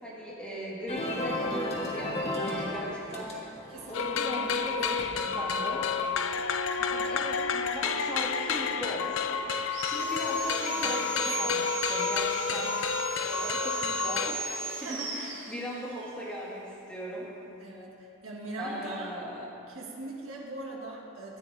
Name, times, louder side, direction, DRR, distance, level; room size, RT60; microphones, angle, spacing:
voice 1, 0.0-3.5 3.9-5.9 6.9-12.8 13.2-17.3 18.6-19.5, right 1 dB, 5° left, -6 dB, 1.8 m, -38 dB
sound 1, 0.9-7.2, left 1 dB, 30° left, 1.2 m, -36 dB
voice 2, 3.7-5.3 6.8-7.1 10.7-11.8 14.8-15.4 17.6-19.1 19.7-21.4, right 2 dB, 85° right, -3 dB, 1.6 m, -42 dB
sound 2, 3.9-14.3, left 6 dB, 70° left, 0.4 m, -30 dB
Sawing, 9.6-16.1, right 3 dB, 60° right, 2.1 m, -36 dB
14.0 x 9.3 x 3.3 m, 2.9 s
head